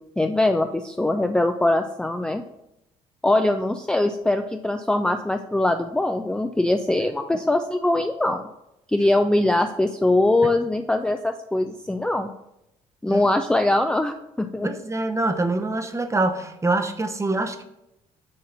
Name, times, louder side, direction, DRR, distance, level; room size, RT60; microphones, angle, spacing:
voice 1, 0.2-2.4 3.2-8.4 8.9-12.3 13.0-14.7, left 2 dB, 5° left, 6 dB, 0.4 m, -22 dB
voice 2, 14.6-17.6, right 2 dB, 20° right, 7 dB, 0.7 m, -25 dB
6.5 x 2.8 x 5.4 m, 0.84 s
hypercardioid pair, 55°, 16 cm